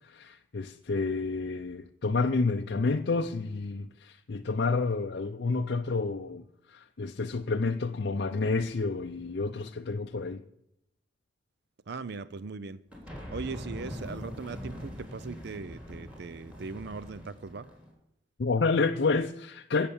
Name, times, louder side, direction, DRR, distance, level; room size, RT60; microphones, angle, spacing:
voice 1, 0.1-6.4 6.7-10.4 18.4-19.9, left 3 dB, 55° left, 0.5 m, -29 dB
voice 2, 11.9-12.8 13.3-17.7, right 4 dB, 60° right, 0.5 m, -39 dB
sound 1, 12.9-17.9, equal, 5° right, 3.6 m, -42 dB
17.0 x 6.7 x 7.1 m
head